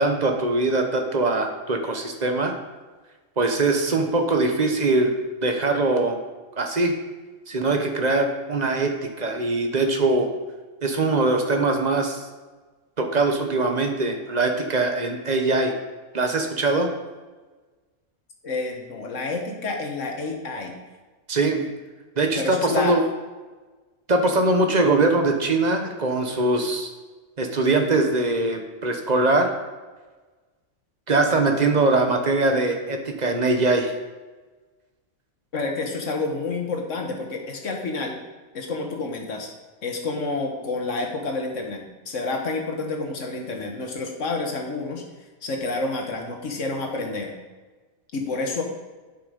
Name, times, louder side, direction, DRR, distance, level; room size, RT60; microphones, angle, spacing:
voice 1, 0.0-2.5 3.4-5.2 5.4-6.2 6.6-6.9 7.5-10.3 10.8-12.3 13.0-15.7 16.1-16.9 21.3-21.6 22.2-23.0 24.1-26.9 27.4-29.5 31.1-33.9, right 2 dB, 35° right, 4 dB, 1.0 m, -22 dB
voice 2, 18.4-20.7 21.6-21.7 22.3-23.0 35.5-38.2 38.5-39.5 39.8-45.0 45.4-47.3 48.1-48.6, left 3 dB, 65° left, 2 dB, 1.6 m, -29 dB
9.0 x 5.8 x 5.1 m, 1.3 s
omnidirectional pair, 1.5 m